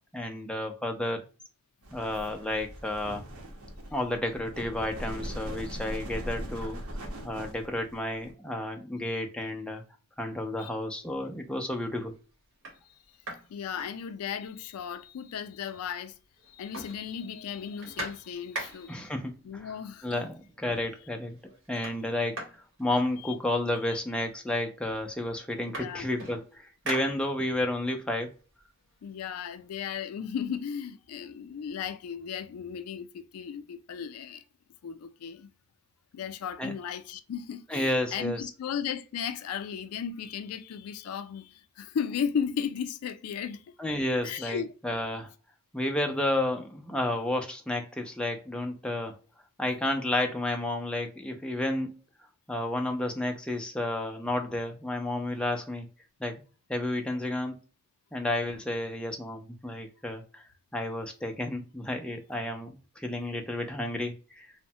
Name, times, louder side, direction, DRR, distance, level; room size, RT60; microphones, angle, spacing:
voice 1, 0.1-1.2 1.9-3.2 3.9-6.8 7.2-9.8 10.2-12.1 18.9-19.8 20.0-21.4 21.7-22.4 22.8-28.3 36.6-36.7 37.7-38.5 43.8-45.3 45.7-49.2 49.6-51.9 52.5-55.9 56.2-56.4 56.7-57.6 58.1-60.4 60.7-64.5, left 1 dB, 5° left, 0.3 m, -31 dB
sound 1, 1.8-8.3, equal, 80° right, 0.8 m, -40 dB
sound 2, 11.1-11.6 12.1-12.2 12.5-14.6 14.9-15.0 15.3-16.1 16.4-19.1 20.0-20.1 20.5-21.0 21.3-23.7 24.5-24.6 24.9-27.7 28.1-29.9, right 1 dB, 55° right, 1.2 m, -43 dB
voice 2, 13.5-16.1 16.5-19.0 19.4-20.2 23.2-23.3 23.8-24.0 25.8-26.1 29.0-34.4 34.8-35.5 36.1-43.6 44.2-44.7, left 7 dB, 85° left, 0.3 m, -35 dB
3.0 x 2.1 x 2.7 m
head